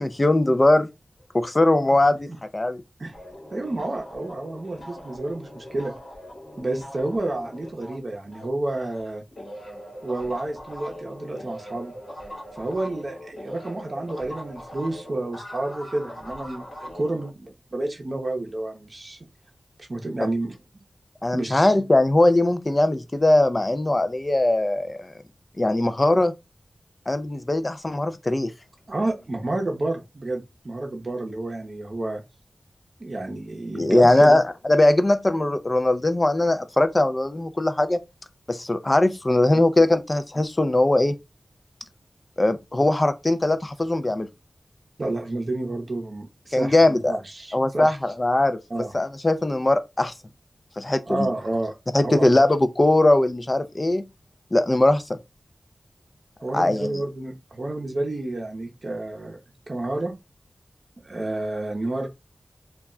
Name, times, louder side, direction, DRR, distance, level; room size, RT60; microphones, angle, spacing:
voice 1, 0.0-0.9 1.3-2.3 2.5-2.8 21.2-25.1 25.6-26.3 27.1-28.5 33.7-38.0 38.5-41.1 42.4-44.3 46.5-47.2 47.5-48.6 48.9-50.1 50.8-51.3 51.9-54.0 54.5-55.2 56.5-56.9, left 1 dB, 30° left, 0.4 m, -20 dB
sound 1, 3.1-9.0 9.3-17.3, equal, 65° left, 1.0 m, -41 dB
voice 2, 3.5-5.9 6.6-9.2 10.0-11.9 12.6-19.2 19.9-20.6 21.3-21.7 28.9-32.2 33.0-34.4 39.5-39.6 45.0-48.0 48.7-48.9 51.1-51.8 52.0-52.3 56.4-59.4 59.7-60.1 61.0-62.1, right 2 dB, 50° right, 0.6 m, -30 dB
2.2 x 2.1 x 3.5 m
wide cardioid pair, 85°, 0 cm